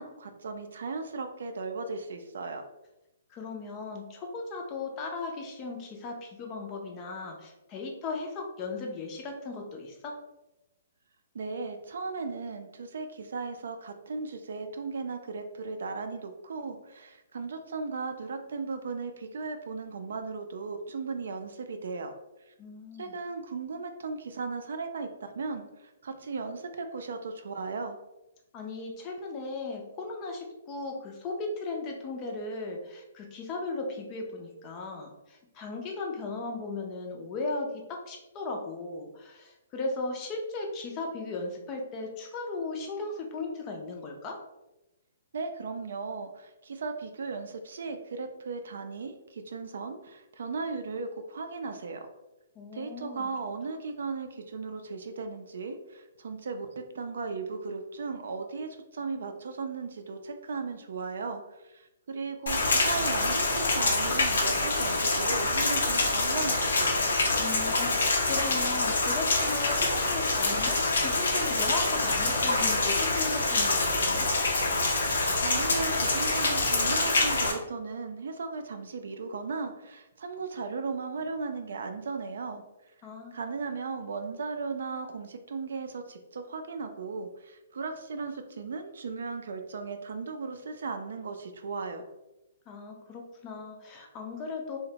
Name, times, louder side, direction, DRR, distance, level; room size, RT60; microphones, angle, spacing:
voice 1, 0.0-2.6 11.3-22.1 22.5-22.6 23.0-28.0 45.3-52.1 52.7-67.1 75.4-82.6 83.3-92.0, right 4 dB, 70° right, 7 dB, 0.3 m, -36 dB
voice 2, 3.3-10.2 22.6-23.2 28.5-44.4 52.6-53.3 67.4-74.3 83.0-83.4 92.7-94.8, left 3 dB, 25° left, 1 dB, 0.4 m, -37 dB
Rain, 62.5-77.5, left 2 dB, 90° left, 0.6 m, -26 dB
2.9 x 2.1 x 2.7 m, 0.96 s
hypercardioid pair, 165°, 0 cm